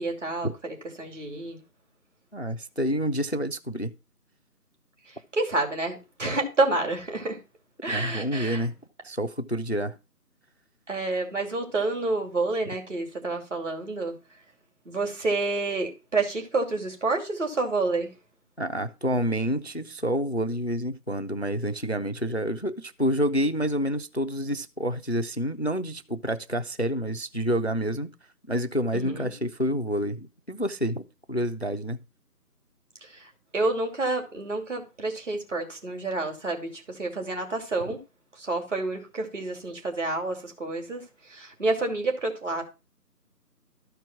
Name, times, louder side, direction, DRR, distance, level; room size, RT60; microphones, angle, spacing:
voice 1, 0.0-1.6 5.0-7.4 7.8-8.7 10.9-14.1 14.9-18.1 28.9-29.3 33.0-38.0 38.3-42.6, right 3 dB, 50° right, 2.6 m, -29 dB
voice 2, 2.3-3.9 7.9-8.7 9.0-9.9 18.6-28.1 28.5-31.0 31.3-32.0, equal, 45° left, 0.5 m, -28 dB
13.0 x 4.6 x 5.9 m
figure-of-eight pair, 165°, 48 cm